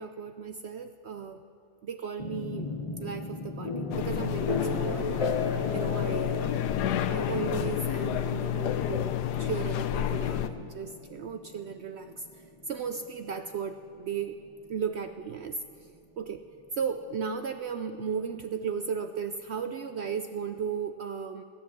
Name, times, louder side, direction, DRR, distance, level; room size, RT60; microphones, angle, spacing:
voice 1, 0.0-1.4 1.8-2.7 3.0-5.4 5.7-6.5 7.1-12.3 12.7-14.4 14.7-15.9 16.2-16.4 16.8-21.4, right 6 dB, 80° right, 8 dB, 0.6 m, -35 dB
sound 1, 2.2-16.0, left 3 dB, 30° left, 0.7 m, -37 dB
sound 2, 3.9-10.5, left 10 dB, 80° left, 1.2 m, -30 dB
17.5 x 10.0 x 7.3 m, 2.5 s
omnidirectional pair, 1.7 m